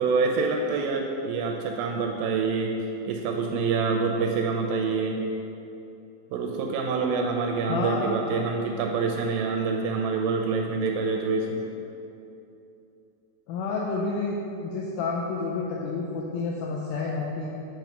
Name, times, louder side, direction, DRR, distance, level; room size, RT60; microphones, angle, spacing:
voice 1, 0.0-2.8 3.1-5.2 6.3-11.6, right 4 dB, 80° right, 2 dB, 2.2 m, -26 dB
voice 2, 7.7-8.1 13.5-17.5, left 3 dB, 80° left, -3 dB, 1.9 m, -29 dB
9.0 x 3.0 x 5.9 m, 2.8 s
omnidirectional pair, 4.3 m